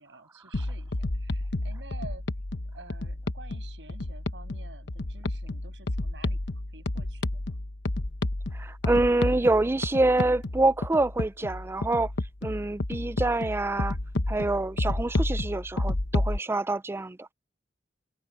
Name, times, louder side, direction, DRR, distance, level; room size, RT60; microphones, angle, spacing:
voice 1, 0.0-2.3 2.7-7.6, right 3 dB, 80° right, 6.9 m, -49 dB
sound 1, 0.5-16.4, left 2 dB, 80° left, 1.1 m, -31 dB
voice 2, 8.5-12.1 12.4-14.0 14.3-17.3, right 2 dB, 15° right, 0.3 m, -26 dB
head